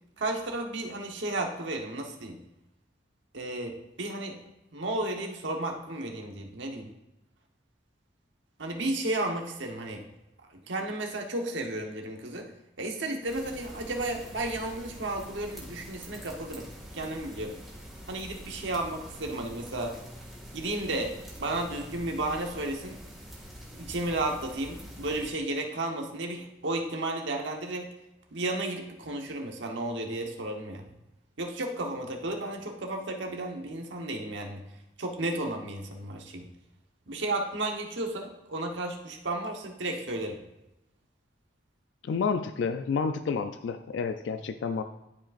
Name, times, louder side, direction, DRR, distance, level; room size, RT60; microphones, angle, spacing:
voice 1, 0.2-2.4 3.3-4.4 4.7-6.9 8.6-10.0 10.7-12.5 12.8-16.7 16.9-17.6 18.1-20.0 20.5-23.0 23.8-27.9 28.3-30.9 31.4-34.6 35.0-36.5 37.1-40.4, right 2 dB, 80° right, 3 dB, 1.0 m, -33 dB
sound 1, 13.3-25.3, equal, ahead, 1.9 m, -45 dB
voice 2, 42.0-44.8, left 5 dB, 75° left, 9 dB, 0.3 m, -30 dB
12.0 x 4.9 x 2.5 m, 0.92 s
head